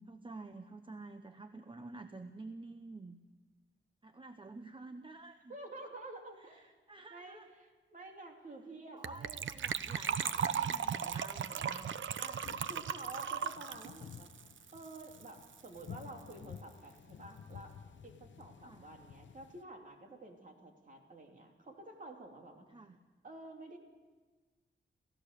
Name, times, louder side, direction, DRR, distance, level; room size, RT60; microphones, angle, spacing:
voice 1, 0.0-3.2 4.0-5.6 6.4-7.5 8.9-12.0 18.6-18.8 22.7-23.0, right 2 dB, 25° right, 8 dB, 0.8 m, -50 dB
voice 2, 5.5-6.7 7.1-9.4 12.2-12.4 12.7-14.3 14.7-17.7 18.0-22.7 23.2-23.8, right 2 dB, 40° right, 2 dB, 2.9 m, -50 dB
Gurgling / Trickle dribble / Fill (with liquid), 9.0-15.3 15.5-15.6 15.8-16.0 16.3-16.4, right 8 dB, 80° right, 0.7 m, -37 dB
sound 1, 10.3-19.6, left 7 dB, 70° left, 0.8 m, -54 dB
28.0 x 15.5 x 6.7 m, 1.3 s
wide cardioid pair, 125°, 20 cm